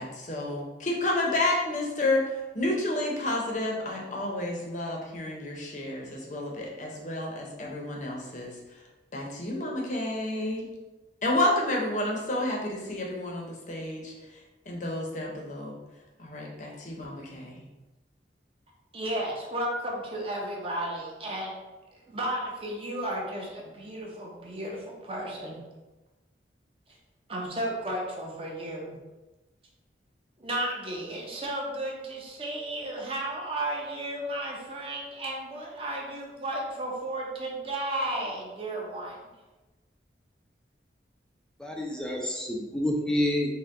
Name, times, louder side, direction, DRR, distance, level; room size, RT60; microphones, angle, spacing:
voice 1, 0.0-8.6 9.1-10.7 11.2-14.4 14.7-15.8 16.2-17.7, left 1 dB, 40° left, -1 dB, 0.7 m, -30 dB
voice 2, 18.9-21.6 21.9-25.6 27.3-29.0 30.4-39.2, right 1 dB, 30° right, -2 dB, 0.7 m, -33 dB
voice 3, 41.6-43.5, left 1 dB, 5° left, -1 dB, 0.4 m, -28 dB
4.3 x 2.2 x 3.7 m, 1.1 s
head